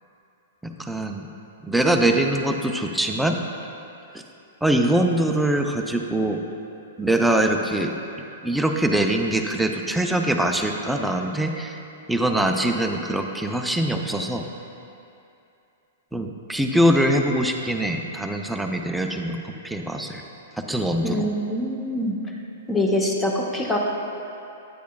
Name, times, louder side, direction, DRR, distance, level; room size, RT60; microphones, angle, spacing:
voice 1, 0.6-1.3 1.6-3.4 4.6-6.4 7.0-7.9 8.4-11.8 12.1-14.5 16.1-20.2 20.7-21.3, right 1 dB, 5° right, 3 dB, 0.5 m, -23 dB
voice 2, 21.0-22.2 22.7-23.8, left 1 dB, 10° left, -1 dB, 0.9 m, -24 dB
9.1 x 8.1 x 2.3 m, 2.7 s
hypercardioid pair, 115°, 0 cm